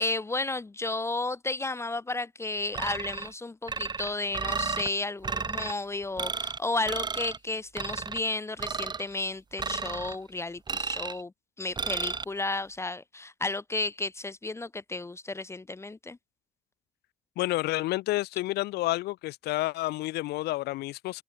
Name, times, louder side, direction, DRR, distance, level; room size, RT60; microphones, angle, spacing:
voice 1, 0.0-11.3 11.6-16.2, left 2 dB, 15° left, 1.2 m, -33 dB
sound 1, 2.7-3.3 3.7-4.9 5.2-5.7 6.2-6.6 6.9-7.4 7.8-8.2 8.6-9.0 9.6-10.2 10.7-11.2 11.8-12.2, right 5 dB, 25° right, 1.7 m, -33 dB
voice 2, 17.4-21.2, left 18 dB, 75° left, 0.5 m, -30 dB
cardioid pair, 110°, 17 cm